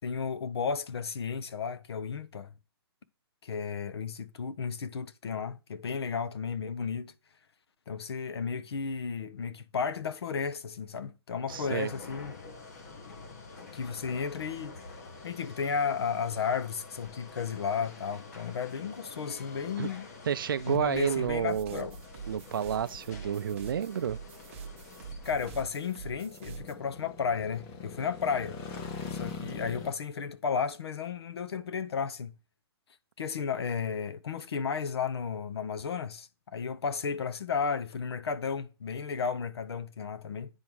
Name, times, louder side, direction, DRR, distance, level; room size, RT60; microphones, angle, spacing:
voice 1, 0.0-2.5 3.4-7.1 7.9-12.4 13.7-14.8 15.2-20.1 20.7-22.0 25.2-28.6 29.1-32.4 33.2-40.5, left 6 dB, 70° left, 0.9 m, -33 dB
sound 1, 11.5-25.7, left 3 dB, 40° left, 1.3 m, -47 dB
voice 2, 11.5-11.9 19.8-19.9 20.3-21.9 22.3-24.2, right 8 dB, 55° right, 0.5 m, -30 dB
sound 2, 14.8-29.9, left 4 dB, 15° left, 0.5 m, -46 dB
sound 3, 21.2-26.7, right 7 dB, 25° right, 0.8 m, -46 dB
9.6 x 3.6 x 6.2 m
hypercardioid pair, 170°, 14 cm